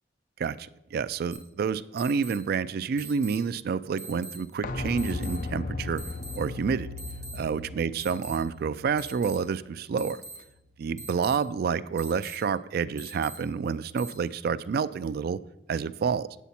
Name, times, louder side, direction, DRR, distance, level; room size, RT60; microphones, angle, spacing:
voice 1, 0.4-6.0 6.3-6.9 7.3-10.2 10.8-15.4 15.7-16.4, right 6 dB, 55° right, 15 dB, 0.3 m, -29 dB
sound 1, 1.3-1.4 2.0-2.4 3.0-3.4 4.0-4.4 5.0-5.4 6.0-6.4 7.0-7.4 8.0-8.4 9.0-9.4 10.0-10.4 11.0-11.4 12.0-12.4 13.0-13.4 14.0-14.1, right 2 dB, 15° right, 2.4 m, -42 dB
sound 2, 4.6-10.3 10.6-10.7, left 3 dB, 45° left, 0.5 m, -37 dB
8.2 x 8.2 x 4.3 m, 0.91 s
head